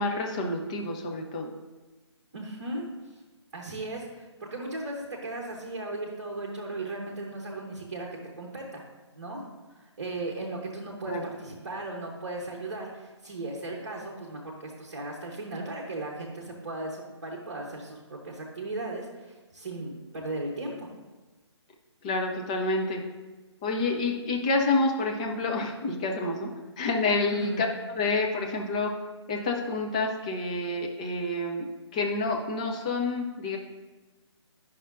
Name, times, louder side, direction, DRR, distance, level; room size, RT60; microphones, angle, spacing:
voice 1, 0.0-1.5 11.1-11.3 22.0-23.0 23.6-26.5 26.8-28.9 29.3-31.6 31.9-33.6, left 3 dB, 15° left, 1 dB, 0.5 m, -28 dB
voice 2, 2.3-3.2 3.5-8.1 8.4-8.8 9.1-9.4 9.8-20.9 27.3-27.6, right 2 dB, 40° right, 0 dB, 0.9 m, -36 dB
9.8 x 5.6 x 2.5 m, 1.2 s
figure-of-eight pair, 145°, 15 cm